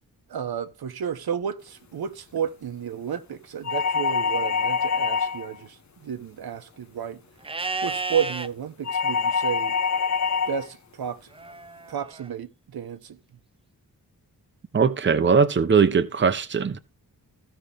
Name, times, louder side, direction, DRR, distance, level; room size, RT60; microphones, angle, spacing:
voice 1, 0.3-7.2 7.8-9.7 10.5-11.3 11.9-13.2, right 8 dB, 90° right, 1.2 m, -32 dB
sound 1, 3.6-5.6 8.8-10.7, left 5 dB, 50° left, 1.1 m, -25 dB
Livestock farm animals working animals, 7.4-8.5 11.3-12.3, right 3 dB, 15° right, 0.5 m, -32 dB
voice 2, 14.7-16.8, right 6 dB, 30° right, 0.9 m, -20 dB
15.0 x 5.7 x 3.5 m
wide cardioid pair, 150°, 36 cm